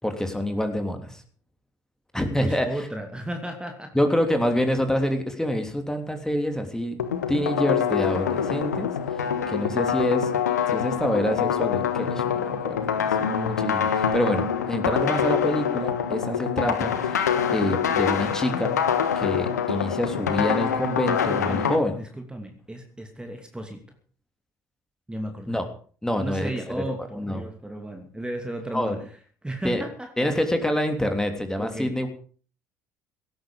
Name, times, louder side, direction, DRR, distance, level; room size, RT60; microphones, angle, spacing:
voice 1, 0.0-1.2 2.1-2.7 3.9-7.0 7.3-10.3 10.7-18.8 19.2-22.0 25.5-25.6 26.0-26.5 26.8-26.9 27.2-27.4 28.7-29.0 29.6-29.8 30.2-32.1, left 1 dB, 5° left, 6 dB, 3.1 m, -26 dB
voice 2, 2.4-3.9 21.0-23.8 25.1-25.6 26.2-30.3 31.6-32.0, right 1 dB, 10° right, 4 dB, 2.8 m, -35 dB
sound 1, 7.0-21.8, left 8 dB, 80° left, 1.3 m, -25 dB
17.5 x 13.0 x 5.2 m, 0.43 s
figure-of-eight pair, 55°, 9 cm